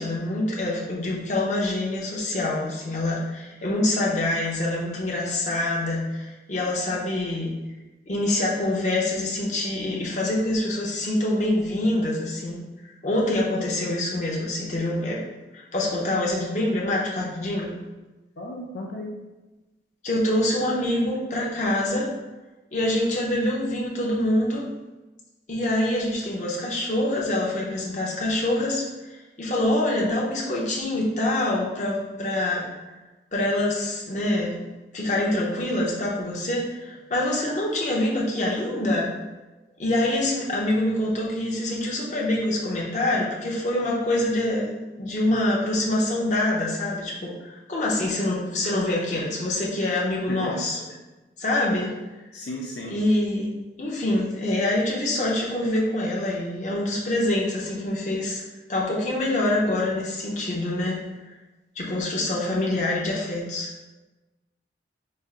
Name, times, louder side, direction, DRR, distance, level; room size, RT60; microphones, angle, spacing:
voice 1, 0.0-7.5 8.1-12.6 13.0-15.2 15.5-17.8 20.0-22.1 22.7-24.7 25.5-32.7 33.3-34.6 34.9-39.1 39.8-50.8 51.4-51.9 52.9-58.4 58.7-61.0 61.8-63.7, left 1 dB, 40° left, -4 dB, 0.8 m, -25 dB
voice 2, 18.4-19.2 50.3-50.6 52.3-53.0, left 1 dB, 70° left, -2 dB, 0.5 m, -34 dB
4.2 x 3.5 x 2.5 m, 1.1 s
head